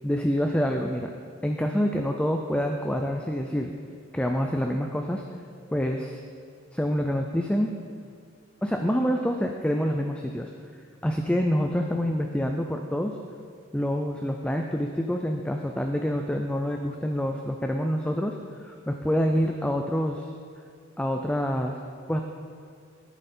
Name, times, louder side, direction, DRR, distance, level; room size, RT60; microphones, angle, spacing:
voice 1, 0.0-1.1 1.4-3.7 4.1-5.2 5.7-6.2 6.7-7.8 8.6-10.5 11.0-13.2 13.7-20.3 21.0-21.8 22.1-22.2, equal, 5° left, 3 dB, 0.4 m, -27 dB
10.5 x 9.1 x 4.3 m, 2.2 s
head